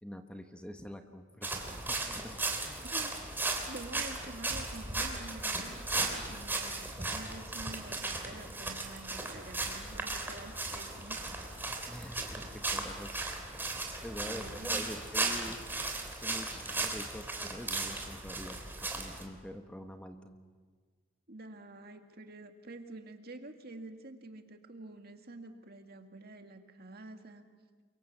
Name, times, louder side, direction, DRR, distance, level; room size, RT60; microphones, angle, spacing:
voice 1, 0.0-2.8 3.3-3.4 11.9-13.2 14.0-15.6 16.2-20.3, equal, 5° left, 5 dB, 1.2 m, -45 dB
sound 1, 1.4-19.2, right 3 dB, 10° right, 3.1 m, -36 dB
voice 2, 2.8-3.2 3.7-11.3 14.3-14.8 21.3-27.4, right 2 dB, 50° right, 5 dB, 2.1 m, -48 dB
29.5 x 24.0 x 7.3 m, 1.5 s
head